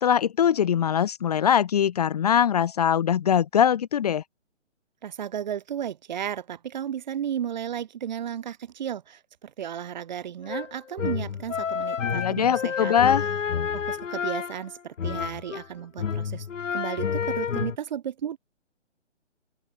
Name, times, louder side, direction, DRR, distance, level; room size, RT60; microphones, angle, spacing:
voice 1, 0.0-4.2 12.1-13.2, left 9 dB, 30° left, 1.3 m, -22 dB
voice 2, 5.0-12.9 13.7-16.5 16.7-18.4, right 9 dB, 35° right, 2.6 m, -34 dB
sound 1, 10.4-15.7 16.0-17.8, left 7 dB, 90° left, 1.1 m, -30 dB
open air
hypercardioid pair, 165°, 37 cm